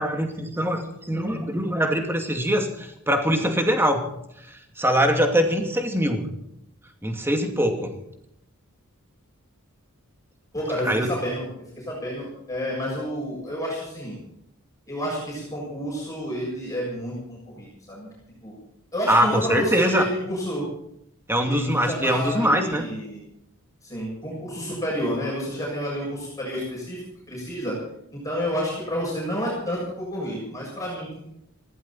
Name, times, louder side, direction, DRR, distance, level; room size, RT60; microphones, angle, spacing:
voice 1, 0.0-4.1 4.5-6.3 7.0-7.9 10.8-11.1 19.1-20.0 21.3-22.8, equal, 10° right, 4 dB, 2.5 m, -23 dB
voice 2, 10.5-11.4 11.8-14.2 14.9-18.1 18.4-18.5 18.9-20.7 21.4-23.2 23.8-27.8 28.1-31.2, equal, 15° left, -5 dB, 7.3 m, -30 dB
19.5 x 16.5 x 4.4 m, 0.76 s
head